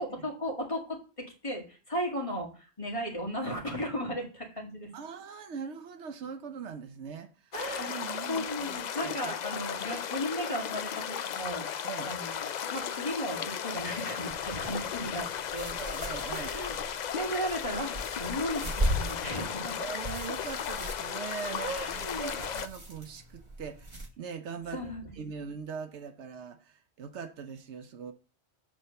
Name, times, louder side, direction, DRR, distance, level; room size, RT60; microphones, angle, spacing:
voice 1, 0.0-4.9 7.5-11.8 12.0-15.8 16.3-16.8 17.2-19.8 21.6-22.4 24.7-25.1, equal, 30° left, 2.3 m, -35 dB
voice 2, 4.9-9.6 11.8-12.1 15.8-16.5 19.8-24.8 25.1-28.1, right 6 dB, 80° right, 1.0 m, -41 dB
sound 1, 7.5-22.7, left 8 dB, 55° left, 0.5 m, -35 dB
sound 2, 14.3-24.1, equal, 25° right, 1.5 m, -38 dB
7.7 x 4.2 x 6.7 m
omnidirectional pair, 1.1 m